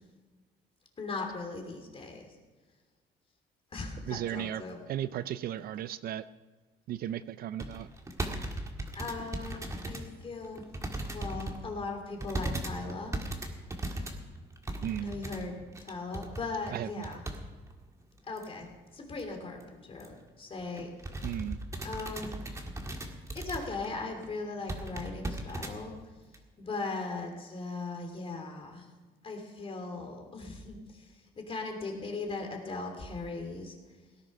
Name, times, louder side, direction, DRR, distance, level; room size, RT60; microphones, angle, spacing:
voice 1, 1.0-2.3 3.7-4.8 8.9-9.6 9.9-10.6 11.1-13.1 15.0-15.5 15.8-17.2 18.3-18.7 18.9-20.9 21.8-22.4 23.3-25.9 26.6-28.9 29.2-31.1 31.5-33.8, left 3 dB, 35° left, 3 dB, 3.1 m, -38 dB
voice 2, 4.1-4.6 4.9-6.2 6.9-7.9 14.8-15.1 16.7-17.1 21.2-21.6, right 11 dB, 60° right, 15 dB, 0.5 m, -35 dB
sound 1, 7.6-10.1 10.4-11.6 12.2-17.4 17.7-17.8 18.4-18.7 19.1-19.2 19.5-19.6 20.0-20.2 20.6-23.9 24.2-24.3 24.7-25.7 26.3-26.4, right 1 dB, 20° right, 1.7 m, -37 dB
18.0 x 10.5 x 5.5 m, 1.3 s
cardioid pair, 110°, 17 cm